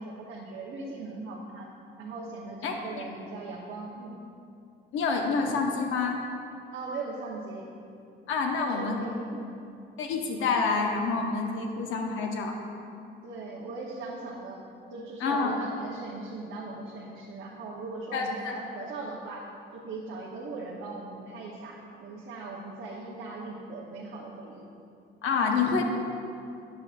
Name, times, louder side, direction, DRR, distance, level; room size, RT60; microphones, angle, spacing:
voice 1, 0.0-1.7 2.0-4.1 6.7-7.7 8.6-9.6 13.2-14.6 14.9-19.5 19.7-24.7, right 3 dB, 90° right, -4 dB, 1.0 m, -39 dB
voice 2, 4.9-6.2 8.3-9.0 10.0-12.6 15.2-15.6 18.1-18.9 25.2-25.8, left 4 dB, 85° left, 2 dB, 0.8 m, -28 dB
11.0 x 7.5 x 2.5 m, 2.6 s
cardioid pair, 90°, 20 cm